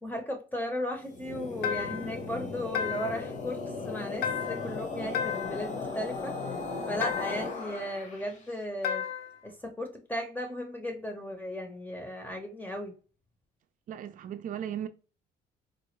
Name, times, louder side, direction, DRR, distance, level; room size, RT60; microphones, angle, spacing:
voice 1, 0.0-6.4 6.9-9.1 9.4-12.9, equal, 10° left, 0.8 m, -36 dB
sound 1, 1.0-8.4, left 4 dB, 45° left, 1.0 m, -37 dB
sound 2, 1.6-2.2 2.7-3.3 4.2-4.8 5.1-5.7 7.0-7.6 8.8-9.4, left 8 dB, 75° left, 0.6 m, -33 dB
voice 2, 13.9-14.9, right 10 dB, 50° right, 0.5 m, -36 dB
4.2 x 2.2 x 3.1 m
cardioid pair, 110°, 17 cm